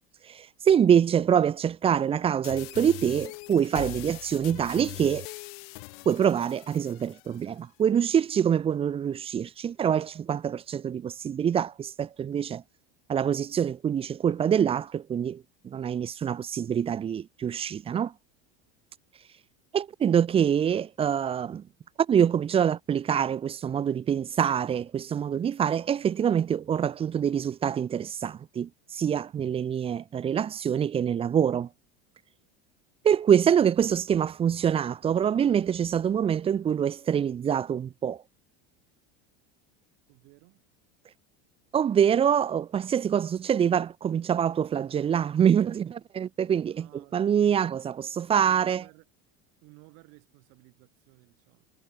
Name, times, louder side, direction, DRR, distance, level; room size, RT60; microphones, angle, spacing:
voice 1, 0.2-5.3 6.0-12.6 13.1-18.1 19.7-21.7 22.1-31.7 33.0-38.2 41.7-48.8, right 8 dB, 20° right, 0.8 m, -25 dB
sound 1, 2.4-7.4, left 29 dB, 70° left, 3.4 m, -42 dB
voice 2, 40.1-40.7 46.7-47.7 48.4-49.1 49.6-51.7, right 32 dB, 55° right, 7.2 m, -55 dB
cardioid pair, 170°, 31 cm